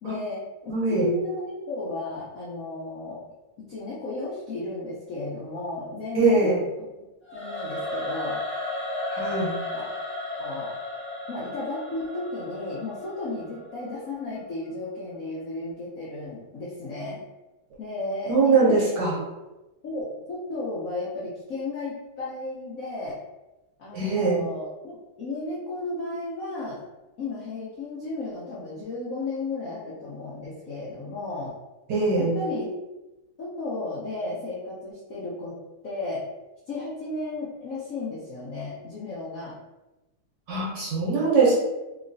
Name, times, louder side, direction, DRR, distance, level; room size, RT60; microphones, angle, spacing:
voice 1, 0.0-3.2 3.7-6.9 7.3-8.4 9.7-9.9 10.4-10.7 11.3-17.2 17.8-19.2 19.8-23.2 23.8-26.9 27.2-31.6 32.2-32.7 33.4-35.5 35.8-36.2 36.7-39.6, left 2 dB, 75° left, -7 dB, 0.7 m, -34 dB
voice 2, 0.7-1.1 6.1-6.6 9.1-9.6 18.3-19.1 23.9-24.4 31.9-32.3 40.5-41.5, right 3 dB, 65° right, -5 dB, 1.2 m, -22 dB
Singing / Musical instrument, 7.3-14.4, left 1 dB, 10° left, 0.7 m, -34 dB
3.0 x 3.0 x 2.6 m, 1.0 s
omnidirectional pair, 2.3 m